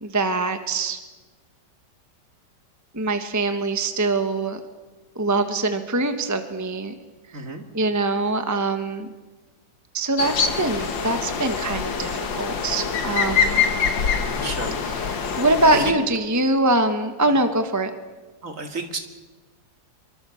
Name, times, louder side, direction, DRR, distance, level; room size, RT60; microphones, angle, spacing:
voice 1, 0.0-1.0 2.9-4.6 5.1-6.9 7.3-7.4 7.7-9.1 9.9-13.6 14.8-15.1 15.4-17.9, right 2 dB, 10° right, 7 dB, 1.3 m, -23 dB
voice 2, 7.3-7.6 14.4-14.8 15.2-15.4 15.7-16.0 18.4-19.0, right 2 dB, 45° right, 5 dB, 2.5 m, -32 dB
sound 1, 10.2-15.9, left 6 dB, 90° left, 2.3 m, -24 dB
25.0 x 24.0 x 7.2 m, 1.3 s
omnidirectional pair, 2.0 m